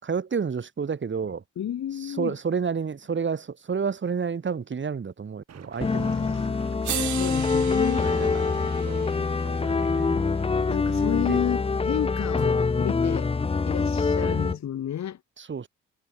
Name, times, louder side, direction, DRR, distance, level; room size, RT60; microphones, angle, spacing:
voice 1, 0.0-1.4 2.0-6.2 6.9-7.2 7.5-7.6 8.0-9.1 9.4-10.4 10.8-11.4 14.2-14.6 15.4-15.7, right 6 dB, 40° right, 5.1 m, -31 dB
voice 2, 1.6-2.3 5.8-6.5 7.1-8.1 10.7-13.3 13.7-15.2, left 10 dB, 65° left, 4.4 m, -31 dB
sound 1, 5.5-9.9, right 9 dB, 55° right, 6.6 m, -48 dB
sound 2, 5.8-14.6, left 4 dB, 20° left, 0.7 m, -25 dB
sound 3, 6.2-6.3 6.8-11.0 12.4-12.5, right 12 dB, 75° right, 2.4 m, -38 dB
cardioid pair, 90°, 30 cm